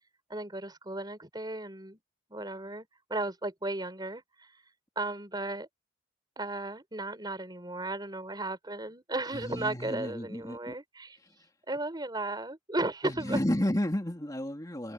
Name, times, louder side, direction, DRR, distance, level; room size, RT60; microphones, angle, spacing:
voice 1, 0.3-2.0 2.3-4.2 5.0-5.7 6.4-11.2 11.7-13.4, right 2 dB, 25° right, 4.4 m, -35 dB
voice 2, 9.3-10.7 13.0-14.9, left 1 dB, 20° left, 3.0 m, -32 dB
head